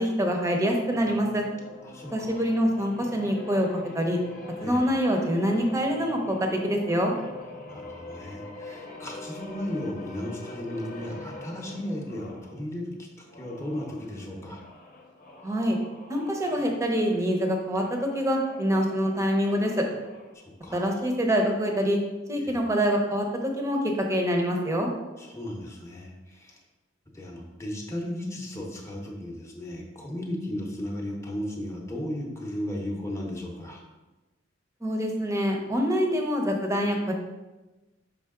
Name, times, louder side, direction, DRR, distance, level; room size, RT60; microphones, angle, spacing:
voice 1, 0.0-1.4 2.1-3.7 3.9-4.2 4.6-7.1 15.4-15.8 16.1-19.9 20.7-22.0 22.3-24.9 34.8-37.1, equal, 15° right, 2 dB, 0.8 m, -25 dB
sound 1, 0.9-12.5 13.2-20.3, left 2 dB, 45° left, 0.9 m, -44 dB
voice 2, 1.8-2.4 4.6-4.8 7.7-14.6 20.3-21.0 22.4-22.6 25.2-26.6 27.1-33.8, left 1 dB, 15° left, -2 dB, 0.9 m, -35 dB
5.7 x 5.0 x 3.7 m, 1.1 s
head